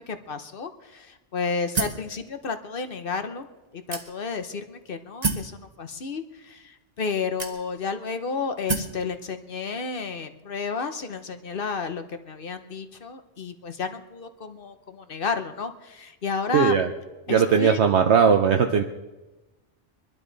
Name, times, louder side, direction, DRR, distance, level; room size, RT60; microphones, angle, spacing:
voice 1, 0.1-3.5 3.7-16.7 17.3-17.9, left 5 dB, 50° left, 9 dB, 1.0 m, -31 dB
sound 1, 1.7-2.1 2.9-3.0 3.9-4.4 5.2-5.5 6.5-6.6 7.4-7.9 8.7-9.0, right 4 dB, 35° right, 1.2 m, -28 dB
voice 2, 16.5-16.9 17.3-18.8, right 7 dB, 70° right, 5 dB, 1.0 m, -19 dB
23.0 x 12.0 x 4.0 m, 1.1 s
omnidirectional pair, 1.2 m